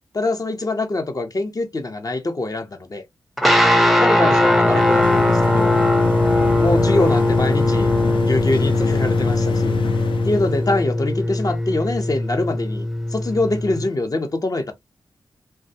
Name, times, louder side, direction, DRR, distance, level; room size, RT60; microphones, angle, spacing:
voice 1, 0.1-3.0 3.9-5.8 6.6-9.8 10.2-12.9 13.1-14.7, left 2 dB, 40° left, 0.7 m, -24 dB
sound 1, 3.4-13.9, left 1 dB, ahead, 0.5 m, -19 dB
sound 2, 4.1-10.8, left 7 dB, 65° left, 0.4 m, -26 dB
2.2 x 2.2 x 2.7 m
cardioid pair, 40°, 9 cm